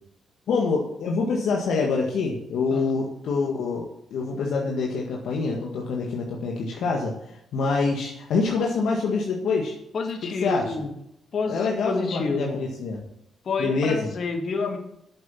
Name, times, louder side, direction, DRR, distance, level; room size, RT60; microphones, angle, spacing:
voice 1, 0.5-7.1 7.5-9.7 10.4-10.7 11.5-13.0 13.6-14.1, left 4 dB, 75° left, -1 dB, 1.7 m, -26 dB
voice 2, 9.9-10.9 11.3-12.6 13.4-14.8, left 4 dB, 60° left, 4 dB, 2.3 m, -28 dB
8.8 x 7.8 x 7.0 m, 0.77 s
supercardioid pair, 60°, 0 cm